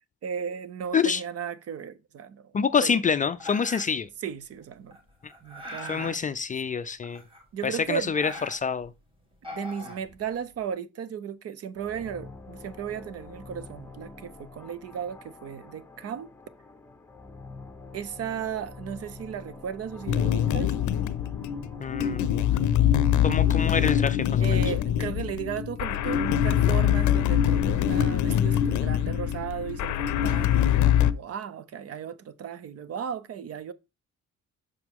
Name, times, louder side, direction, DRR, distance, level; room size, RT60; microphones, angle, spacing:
voice 1, 0.2-2.5 2.8-3.0 4.2-5.0 5.4-6.2 7.5-8.1 9.5-16.3 17.9-20.8 24.4-33.7, right 8 dB, 55° right, 0.6 m, -35 dB
voice 2, 2.5-4.1 5.2-5.3 5.8-7.2 7.6-8.9 21.8-22.3 23.2-24.6, left 6 dB, 30° left, 0.3 m, -27 dB
sound 1, 3.4-4.1 4.9-6.2 7.0-7.7 8.0-8.9 9.3-10.6, left 1 dB, 20° right, 2.1 m, -41 dB
sound 2, 11.7-25.1, left 3 dB, 10° left, 0.8 m, -46 dB
sound 3, 20.1-31.1, left 10 dB, 90° left, 0.5 m, -24 dB
7.8 x 6.0 x 3.6 m
wide cardioid pair, 170°, 29 cm